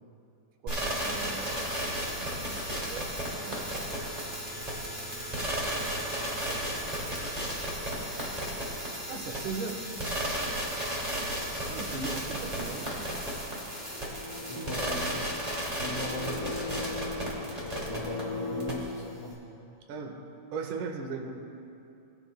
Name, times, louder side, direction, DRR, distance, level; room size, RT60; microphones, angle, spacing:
voice 1, 0.6-1.7 2.2-3.8 6.4-6.6 9.1-9.8 11.7-13.1 14.6-14.7 19.9-20.2 20.5-21.4, right 4 dB, 85° right, 4 dB, 2.3 m, -39 dB
sound 1, 0.7-18.2 18.6-18.7, right 1 dB, 15° right, 1.4 m, -34 dB
sound 2, 12.8-18.7, left 3 dB, 35° left, 1.6 m, -40 dB
voice 2, 14.5-15.0 15.8-19.4, left 2 dB, 70° left, -4 dB, 3.4 m, -39 dB
18.5 x 10.5 x 2.2 m, 2.6 s
omnidirectional pair, 3.6 m